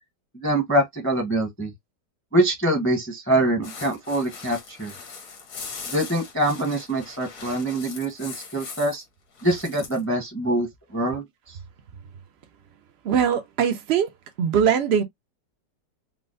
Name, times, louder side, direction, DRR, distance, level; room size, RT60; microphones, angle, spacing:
voice 1, 0.3-1.7 2.3-4.9 5.9-9.0 9.4-11.6, right 1 dB, 15° left, 0.5 m, -24 dB
sound 1, 3.6-9.0 9.3-10.0, left 5 dB, 70° left, 1.7 m, -40 dB
voice 2, 13.0-14.1 14.4-15.0, right 8 dB, 90° right, 0.5 m, -21 dB
4.2 x 2.0 x 2.5 m
omnidirectional pair, 1.9 m